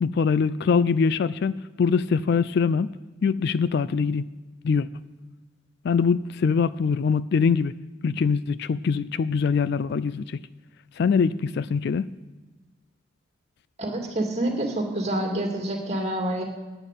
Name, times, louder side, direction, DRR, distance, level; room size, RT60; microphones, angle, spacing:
voice 1, 0.0-2.9 3.2-4.2 4.6-4.9 5.8-7.7 8.0-10.4 11.0-12.1, left 5 dB, 55° left, 17 dB, 0.3 m, -23 dB
voice 2, 13.8-16.4, right 1 dB, 30° right, 1 dB, 2.2 m, -27 dB
11.0 x 7.0 x 9.1 m, 1.2 s
head